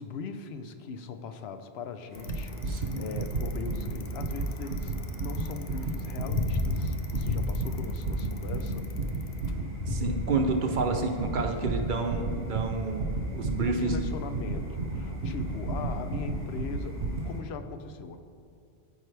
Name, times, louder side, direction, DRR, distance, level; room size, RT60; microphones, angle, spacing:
voice 1, 0.0-8.9 13.6-18.2, left 5 dB, 75° left, 8 dB, 0.8 m, -40 dB
Bicycle, 2.1-10.2, left 3 dB, 55° left, 0.5 m, -33 dB
sound 1, 2.1-17.4, equal, 10° left, 1.3 m, -49 dB
sound 2, 2.2-17.3, right 2 dB, 75° right, 1.1 m, -33 dB
voice 2, 2.7-3.0 9.9-13.0 13.3-14.0, right 3 dB, 55° right, 4 dB, 0.7 m, -29 dB
13.5 x 4.7 x 3.3 m, 2.4 s
omnidirectional pair, 1.1 m